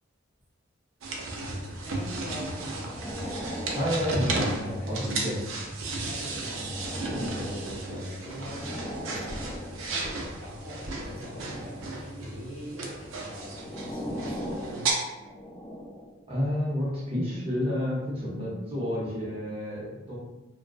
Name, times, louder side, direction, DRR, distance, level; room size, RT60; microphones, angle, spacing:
sound 1, 1.0-14.9, right 3 dB, 85° right, 0.4 m, -34 dB
voice 1, 1.8-3.0 4.8-5.4 6.0-6.7 7.0-9.5 9.8-14.9, equal, 90° left, -6 dB, 0.9 m, -42 dB
sound 2, 2.2-5.3 6.0-10.2 10.9-12.1 12.9-16.2 16.9-17.1, equal, 15° left, 0.4 m, -40 dB
voice 2, 3.7-5.4 16.3-20.2, left 1 dB, 30° right, -6 dB, 0.6 m, -30 dB
2.2 x 2.2 x 2.4 m, 1.1 s
head